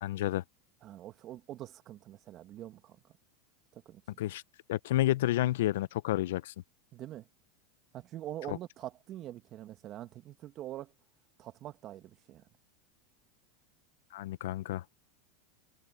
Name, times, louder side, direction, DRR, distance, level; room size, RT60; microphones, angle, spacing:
voice 1, 0.0-0.4 4.2-4.4 4.7-6.5 8.5-8.6 14.1-14.8, left 14 dB, 75° left, 0.7 m, -30 dB
voice 2, 0.8-3.0 3.7-4.0 6.9-7.3 7.9-10.9 11.4-12.4, right 13 dB, 45° right, 2.0 m, -44 dB
hypercardioid pair, 115°, 0 cm